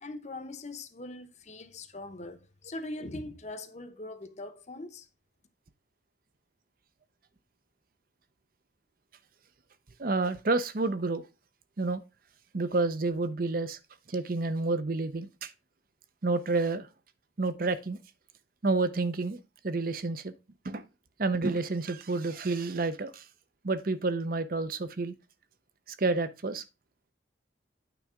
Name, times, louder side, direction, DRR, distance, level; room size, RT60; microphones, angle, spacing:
voice 1, 0.0-5.1, left 2 dB, 40° left, 0.9 m, -41 dB
voice 2, 10.0-11.2 11.8-12.0 12.5-13.8 14.1-15.5 16.2-16.9 17.4-18.0 18.6-20.3 20.6-20.9 21.2-23.2 23.6-25.1 25.9-26.6, right 3 dB, 50° right, 0.7 m, -29 dB
9.1 x 3.5 x 5.0 m
head